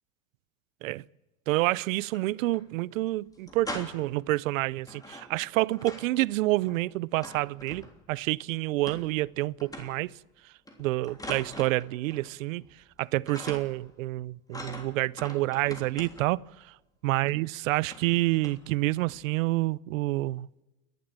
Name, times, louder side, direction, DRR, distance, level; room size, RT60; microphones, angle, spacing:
voice 1, 1.5-10.1 10.8-12.6 13.0-16.7 17.0-20.5, right 19 dB, 90° right, 0.6 m, -28 dB
sound 1, 1.9-2.6 2.9-3.0 3.3-4.2 4.8-6.2 6.5-8.2 8.9-9.3 9.6-10.1 10.7-12.3 12.6-13.0 13.3-13.9 14.5-16.4 17.3-17.4 17.8-18.2 18.4-18.7 19.1-19.3, left 1 dB, 10° left, 3.3 m, -43 dB
29.0 x 12.0 x 7.4 m
supercardioid pair, 110°, 38 cm